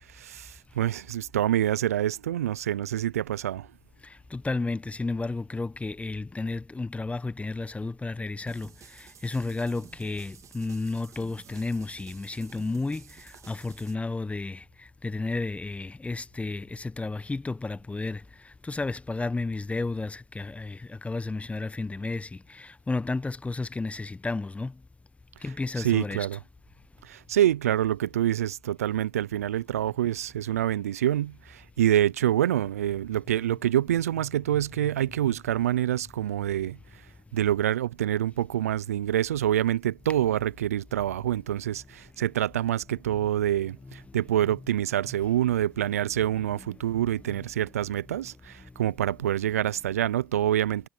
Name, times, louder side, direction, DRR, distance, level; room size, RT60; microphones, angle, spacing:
voice 1, 0.1-3.7 25.8-26.4 27.0-36.8 37.3-50.9, right 11 dB, 85° right, 0.7 m, -26 dB
voice 2, 4.0-24.8 25.4-26.4 34.2-34.3 34.5-34.9 43.1-43.3 43.8-44.5 45.1-45.2 46.2-47.5 47.8-47.9, left 3 dB, 15° left, 1.3 m, -33 dB
sound 1, 8.5-13.9, right 8 dB, 40° right, 3.5 m, -52 dB
hypercardioid pair, 65°, 8 cm